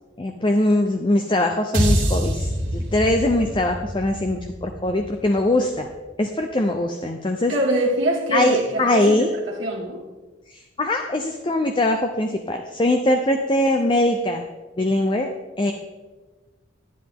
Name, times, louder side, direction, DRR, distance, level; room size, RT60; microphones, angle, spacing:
voice 1, 0.2-5.9 6.2-7.5 8.3-9.3 10.5-14.4 14.8-15.3 15.6-15.7, left 1 dB, 25° left, 0.5 m, -21 dB
sound 1, 1.7-6.1, equal, 45° right, 1.9 m, -26 dB
voice 2, 7.5-10.0, right 1 dB, 90° right, 1.6 m, -24 dB
11.5 x 10.0 x 3.6 m
head